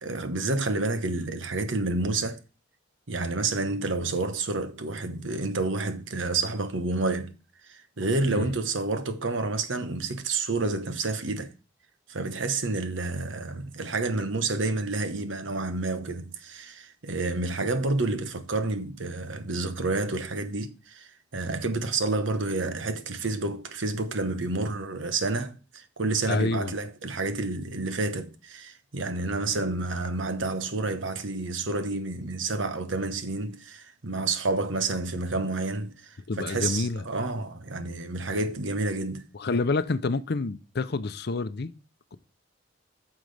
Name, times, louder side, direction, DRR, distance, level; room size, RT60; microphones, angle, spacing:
voice 1, 0.0-2.4 3.1-7.4 7.7-11.5 12.1-39.3, right 3 dB, 80° right, 1.1 m, -29 dB
voice 2, 26.3-26.7 36.3-37.0 39.3-41.7, left 3 dB, 60° left, 0.6 m, -28 dB
9.2 x 6.1 x 3.4 m
head